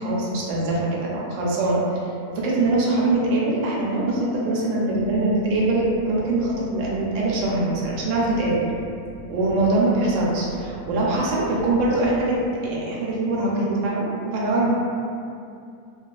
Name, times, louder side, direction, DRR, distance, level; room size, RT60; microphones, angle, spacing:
voice 1, 0.0-1.8 2.3-8.6 9.3-14.7, right 2 dB, 70° right, -5 dB, 0.8 m, -23 dB
sound 1, 4.9-12.5, equal, 70° left, 0.8 m, -42 dB
2.4 x 2.3 x 2.3 m, 2.4 s
omnidirectional pair, 1.6 m